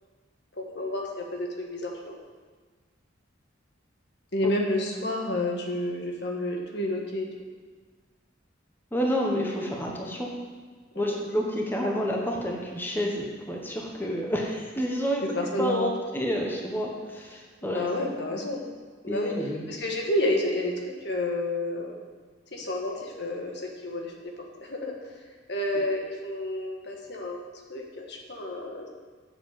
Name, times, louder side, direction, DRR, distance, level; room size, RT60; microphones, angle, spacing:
voice 1, 0.6-2.2 4.3-7.3 10.9-11.1 15.2-15.9 17.6-18.6 19.0-19.3 19.7-21.9 22.5-25.1 25.5-27.4 27.7-28.9, left 1 dB, 60° left, 1 dB, 1.6 m, -30 dB
voice 2, 8.9-10.3 10.9-18.2 19.1-19.8, equal, 10° left, -1 dB, 1.2 m, -29 dB
8.1 x 6.9 x 7.5 m, 1.4 s
head